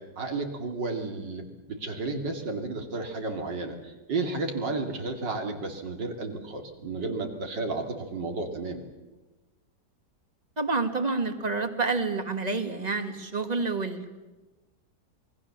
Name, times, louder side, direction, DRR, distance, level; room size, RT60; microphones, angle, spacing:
voice 1, 0.0-8.8, right 3 dB, 85° right, 3 dB, 3.5 m, -32 dB
voice 2, 10.6-14.2, right 3 dB, 25° right, 7 dB, 1.9 m, -28 dB
27.5 x 21.0 x 7.3 m, 1.2 s
omnidirectional pair, 1.9 m